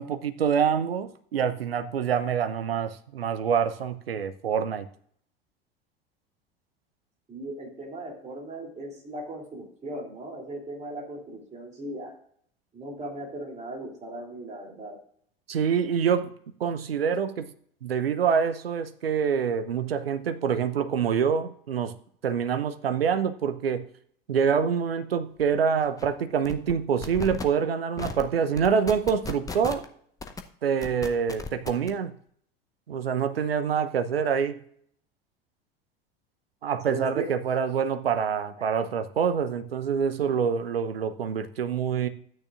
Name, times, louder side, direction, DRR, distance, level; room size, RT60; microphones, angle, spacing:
voice 1, 0.0-4.9 15.5-16.3 16.6-17.5 17.8-21.9 22.2-23.9 24.3-29.9 30.6-32.2 32.9-34.6 36.6-42.1, right 7 dB, 75° right, 10 dB, 0.8 m, -26 dB
voice 2, 7.3-12.1 12.7-15.0 36.9-37.4 38.6-38.7, right 1 dB, 20° right, 0 dB, 3.1 m, -38 dB
sound 1, 25.4-25.5 25.8-26.1 26.5-26.7 27.0-27.4 28.0-28.2 28.6-29.9 30.2-30.4 30.8-31.9, left 4 dB, 10° left, 0.8 m, -35 dB
13.5 x 9.2 x 2.5 m, 0.63 s
figure-of-eight pair, 80°, 30 cm